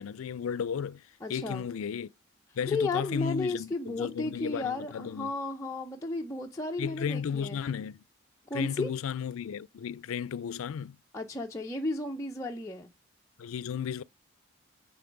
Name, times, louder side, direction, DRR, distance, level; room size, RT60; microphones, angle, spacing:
voice 1, 0.0-1.0 1.3-2.1 2.6-5.3 6.8-8.0 8.5-11.0 13.4-14.0, left 7 dB, 80° left, 0.4 m, -34 dB
voice 2, 1.2-1.7 2.7-7.6 8.5-8.9 11.1-12.9, left 2 dB, 15° left, 0.5 m, -33 dB
9.4 x 3.8 x 5.2 m
head